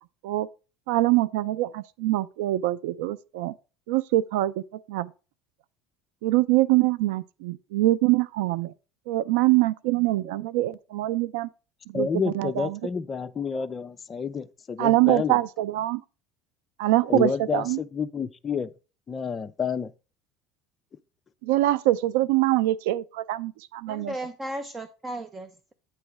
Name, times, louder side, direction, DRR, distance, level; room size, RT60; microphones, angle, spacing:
voice 1, 0.9-3.5 3.9-4.6 4.9-5.1 6.2-8.7 9.1-11.5 11.9-12.8 14.8-16.0 16.8-17.8 21.4-24.1, right 17 dB, 85° right, 0.5 m, -24 dB
voice 2, 11.9-15.4 17.1-18.7 19.1-19.9, left 6 dB, 25° left, 0.5 m, -29 dB
voice 3, 23.9-25.7, right 1 dB, 20° right, 0.6 m, -35 dB
8.9 x 3.2 x 5.9 m
supercardioid pair, 125°, 0 cm